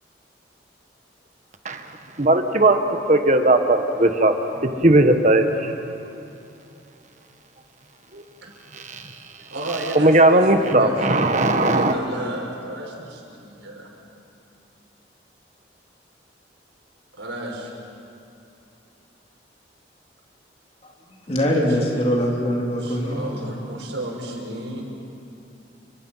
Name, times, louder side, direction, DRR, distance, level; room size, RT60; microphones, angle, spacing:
voice 1, 2.2-2.8 3.1-4.4 4.6-5.7 8.1-8.2 8.7-9.0 9.9-11.9, right 2 dB, 40° right, 7 dB, 1.5 m, -17 dB
voice 2, 9.5-13.9 17.2-17.7 21.3-21.8 22.8-24.9, right 1 dB, 90° right, -1 dB, 5.6 m, -33 dB
voice 3, 21.3-23.7, equal, 35° left, -1 dB, 3.5 m, -23 dB
29.5 x 24.0 x 5.8 m, 2.6 s
head